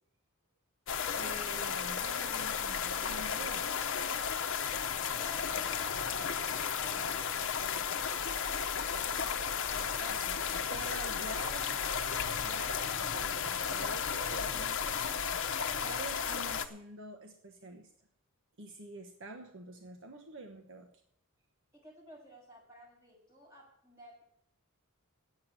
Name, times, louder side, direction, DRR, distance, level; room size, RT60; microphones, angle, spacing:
sound 1, 0.9-16.7, left 7 dB, 55° left, 0.9 m, -34 dB
voice 1, 1.2-3.7 10.0-15.5 15.8-17.9 18.6-20.9, right 2 dB, 60° right, 4 dB, 1.2 m, -47 dB
voice 2, 4.8-7.5 7.9-9.4 21.7-24.2, equal, 15° right, -4 dB, 6.3 m, -54 dB
9.6 x 7.8 x 9.0 m, 0.73 s
head